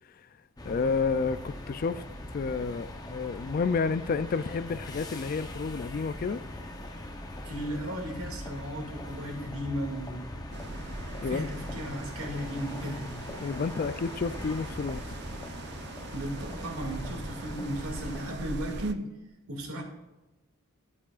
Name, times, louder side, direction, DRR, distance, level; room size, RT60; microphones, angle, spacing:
voice 1, 0.6-2.0 2.3-6.4 11.2-11.5 13.4-15.1, left 4 dB, 40° left, 0.3 m, -30 dB
sound 1, 0.6-18.3, left 1 dB, 20° left, 0.8 m, -41 dB
voice 2, 7.4-10.3 11.3-13.1 16.1-19.0 19.5-19.8, equal, 85° right, 2.3 m, -35 dB
sound 2, 10.5-18.9, right 3 dB, 50° right, 0.5 m, -42 dB
13.0 x 8.5 x 2.4 m
head